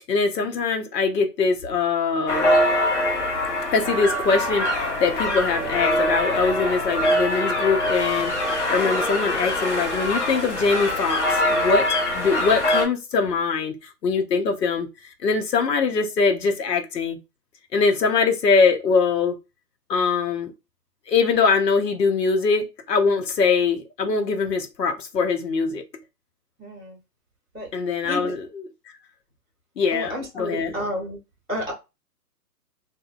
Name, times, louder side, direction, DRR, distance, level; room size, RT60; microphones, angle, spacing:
voice 1, 0.1-2.5 3.7-11.9 12.1-13.8 14.0-14.9 15.2-17.2 17.7-19.4 19.9-20.5 21.1-25.8 27.7-28.7 29.8-30.7, left 4 dB, 90° left, 0.7 m, -22 dB
sound 1, 2.3-12.9, left 1 dB, 45° left, 0.9 m, -23 dB
voice 2, 26.6-27.0 27.5-27.7 28.0-28.3 29.9-31.2 31.5-31.7, equal, ahead, 0.6 m, -31 dB
2.6 x 2.1 x 2.4 m
hypercardioid pair, 145°, 48 cm